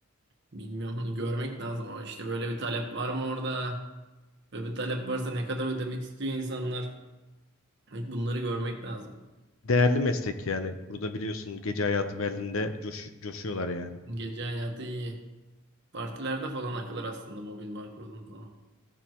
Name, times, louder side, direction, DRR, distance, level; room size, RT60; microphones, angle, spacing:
voice 1, 0.5-3.8 4.5-6.9 7.9-9.2 14.1-15.2 15.9-18.5, right 1 dB, 55° right, 2 dB, 1.3 m, -33 dB
voice 2, 9.6-14.0, left 3 dB, 70° left, 8 dB, 0.8 m, -29 dB
15.0 x 7.0 x 3.0 m, 1.1 s
head